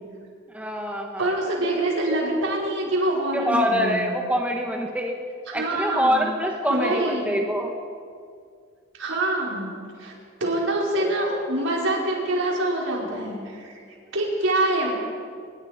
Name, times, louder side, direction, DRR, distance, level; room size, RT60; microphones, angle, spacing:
voice 1, 0.5-1.5 3.3-5.1 5.5-7.7, equal, 5° right, 1 dB, 1.6 m, -25 dB
voice 2, 1.2-4.1 5.5-6.2 6.7-7.4 8.9-10.1 10.4-13.7 14.1-14.9, right 1 dB, 75° right, -2 dB, 5.3 m, -25 dB
25.5 x 22.0 x 5.2 m, 2.2 s
head